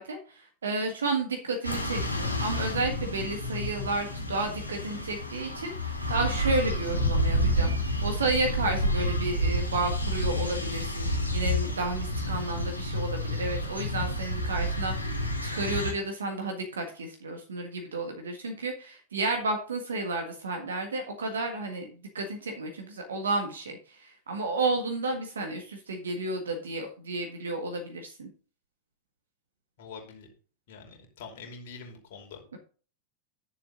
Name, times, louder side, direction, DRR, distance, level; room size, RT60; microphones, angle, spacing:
voice 1, 0.0-7.7 8.0-28.3 32.5-32.6, right 2 dB, 70° right, 4 dB, 1.6 m, -32 dB
sound 1, 1.6-15.9, equal, 85° left, 1.9 m, -29 dB
voice 2, 29.8-30.3 30.7-32.4, left 5 dB, 50° left, 1 dB, 2.9 m, -45 dB
10.5 x 6.9 x 3.9 m, 0.39 s
figure-of-eight pair, 90°, 0 cm